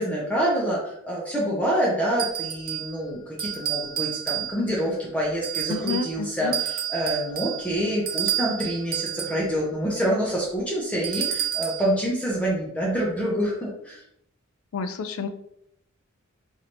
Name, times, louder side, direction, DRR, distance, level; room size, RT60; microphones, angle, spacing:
voice 1, 0.0-14.0, equal, 5° left, -5 dB, 0.7 m, -26 dB
sound 1, 2.2-3.0 3.4-4.8 5.4-6.1 6.5-9.5 11.0-11.9, right 10 dB, 45° right, 0.7 m, -30 dB
voice 2, 5.7-6.6 14.7-15.3, left 5 dB, 75° left, 10 dB, 0.4 m, -30 dB
4.8 x 2.7 x 2.9 m, 0.73 s
head